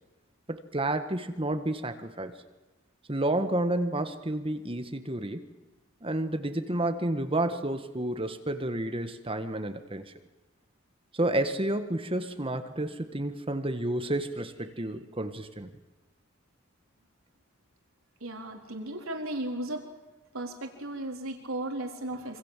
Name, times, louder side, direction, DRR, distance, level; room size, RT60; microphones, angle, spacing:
voice 1, 0.5-2.4 3.1-5.5 6.0-10.1 11.1-15.7, right 1 dB, 25° right, 8 dB, 1.6 m, -30 dB
voice 2, 18.2-19.8 20.3-22.4, right 1 dB, 80° right, 2 dB, 4.0 m, -35 dB
26.5 x 25.5 x 7.6 m, 1.1 s
head